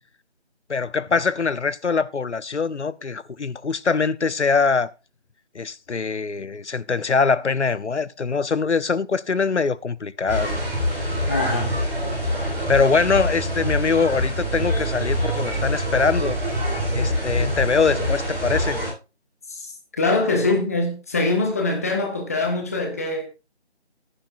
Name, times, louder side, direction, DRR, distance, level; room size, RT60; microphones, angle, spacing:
voice 1, 0.7-4.9 5.5-10.6 12.7-16.4 16.9-18.8, left 5 dB, 90° left, 0.8 m, -23 dB
sound 1, 10.3-18.9, equal, 5° right, 4.5 m, -25 dB
voice 2, 11.3-11.8 19.5-23.2, left 2 dB, 15° left, 1.5 m, -23 dB
15.5 x 9.8 x 2.6 m
figure-of-eight pair, 170°, 33 cm